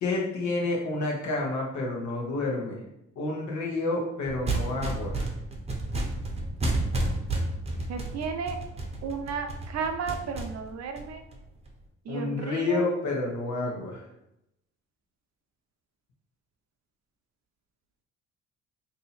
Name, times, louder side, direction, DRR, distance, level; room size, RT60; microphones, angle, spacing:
voice 1, 0.0-2.8 3.2-5.3 12.1-14.0, left 2 dB, 70° left, -1 dB, 1.1 m, -29 dB
sound 1, 4.3-11.7, right 2 dB, 20° right, 0.7 m, -31 dB
voice 2, 7.9-8.6 9.0-11.2 12.1-12.8, right 5 dB, 60° right, 6 dB, 0.6 m, -33 dB
2.7 x 2.7 x 4.2 m, 0.82 s
cardioid pair, 90°, 30 cm